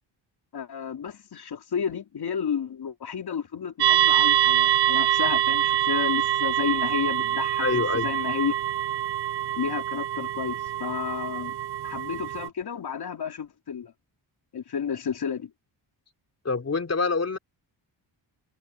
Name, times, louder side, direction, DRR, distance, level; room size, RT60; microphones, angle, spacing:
voice 1, 0.5-8.5 9.6-11.6 11.8-13.9 14.5-15.5, left 7 dB, 55° left, 3.6 m, -31 dB
sound 1, 3.8-12.5, right 12 dB, 55° right, 0.8 m, -25 dB
voice 2, 7.6-8.1 16.4-17.4, left 4 dB, 30° left, 4.0 m, -26 dB
wide cardioid pair, 135°, 47 cm